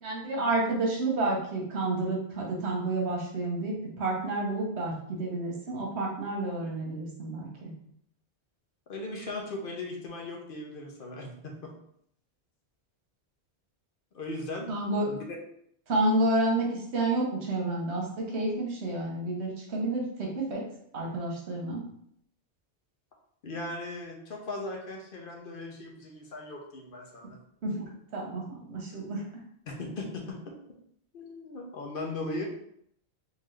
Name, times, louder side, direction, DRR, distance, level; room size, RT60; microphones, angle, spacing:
voice 1, 0.0-7.7 14.7-15.1 15.9-20.7 20.9-21.8 27.6-27.8 28.1-29.2, right 2 dB, 80° right, -1 dB, 1.2 m, -30 dB
voice 2, 8.9-11.7 14.1-14.7 15.1-15.2 23.4-27.4 29.7-30.5 31.1-32.4, left 2 dB, 60° left, 1 dB, 0.8 m, -38 dB
3.7 x 2.7 x 3.2 m, 0.69 s
omnidirectional pair, 1.1 m